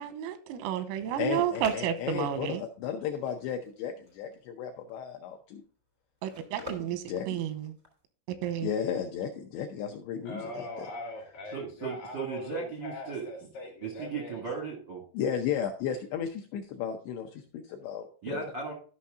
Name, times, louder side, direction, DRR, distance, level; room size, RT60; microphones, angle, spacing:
voice 1, 0.0-2.6 6.2-7.8 8.4-8.7, right 9 dB, 90° right, 11 dB, 3.6 m, -31 dB
sound 1, 1.1-8.1, equal, 50° right, 0.4 m, -48 dB
voice 2, 1.2-3.9 4.2-4.3 4.6-5.6 6.6-6.7 7.1-7.4 8.6-10.9 15.1-18.5, left 8 dB, 80° left, 4 dB, 2.5 m, -34 dB
voice 3, 10.3-14.4, left 1 dB, 65° left, -1 dB, 2.3 m, -41 dB
voice 4, 11.5-13.3 13.8-15.0 18.2-18.7, right 5 dB, 70° right, -1 dB, 1.0 m, -36 dB
13.5 x 5.7 x 3.6 m, 0.42 s
omnidirectional pair, 5.8 m